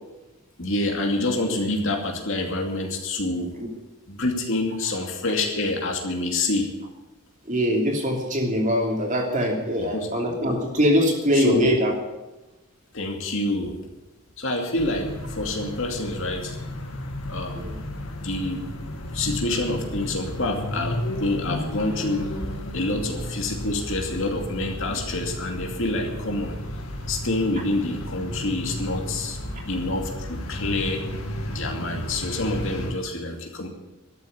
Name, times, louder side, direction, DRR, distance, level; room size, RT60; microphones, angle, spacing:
voice 1, 0.6-3.5 4.1-6.7 9.9-10.1 11.3-11.7 12.9-13.8 14.4-16.6 17.3-17.8 18.2-18.6 19.1-22.5 22.7-26.6 27.1-29.4 29.7-31.0 31.5-33.7, left 2 dB, 60° left, 2 dB, 2.6 m, -27 dB
voice 2, 7.5-11.9 17.5-17.7, equal, 35° right, 1 dB, 3.0 m, -22 dB
sound 1, 14.8-32.9, left 1 dB, 75° left, 2.1 m, -33 dB
12.5 x 8.3 x 9.7 m, 1.0 s
head